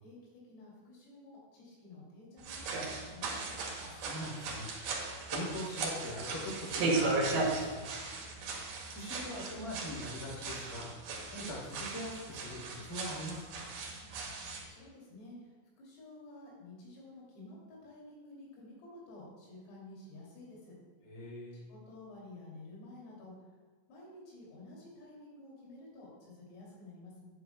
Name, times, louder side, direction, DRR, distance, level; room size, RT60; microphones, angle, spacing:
voice 1, 0.0-3.5 14.7-15.4 15.8-20.8 21.5-23.3 23.9-27.3, left 2 dB, 80° left, -4 dB, 5.4 m, -52 dB
sound 1, 2.4-14.7, right 3 dB, 60° right, 3.0 m, -37 dB
voice 2, 3.8-4.9 5.3-7.9 8.9-13.7 21.0-21.6, left 1 dB, 10° left, -4 dB, 1.5 m, -42 dB
13.0 x 9.2 x 2.3 m, 1.4 s
omnidirectional pair, 6.0 m